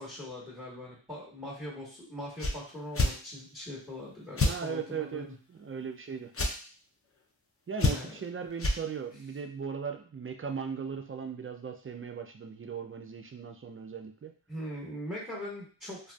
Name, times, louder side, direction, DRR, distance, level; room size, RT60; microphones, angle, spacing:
voice 1, 0.0-5.3 7.9-8.2 14.5-16.1, left 1 dB, 5° right, -6 dB, 1.3 m, -41 dB
sound 1, 2.4-2.6 2.9-3.1 4.4-4.6 6.3-6.5 7.8-8.2 8.6-8.8, left 2 dB, 30° left, 0.6 m, -26 dB
voice 2, 4.4-6.3 7.7-14.3, right 6 dB, 30° right, 5 dB, 0.4 m, -38 dB
2.6 x 2.4 x 2.3 m, 0.40 s
cardioid pair, 40°, 48 cm